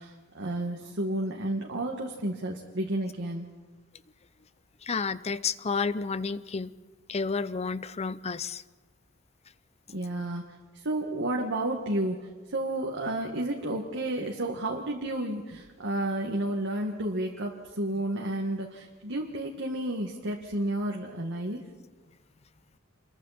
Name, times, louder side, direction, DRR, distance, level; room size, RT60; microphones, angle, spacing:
voice 1, 0.0-3.5 9.9-10.4 10.7-21.6, right 1 dB, 60° right, -1 dB, 1.9 m, -31 dB
voice 2, 4.8-6.7 7.1-8.6, left 5 dB, 30° left, 16 dB, 0.6 m, -31 dB
28.0 x 22.5 x 4.3 m, 1.3 s
head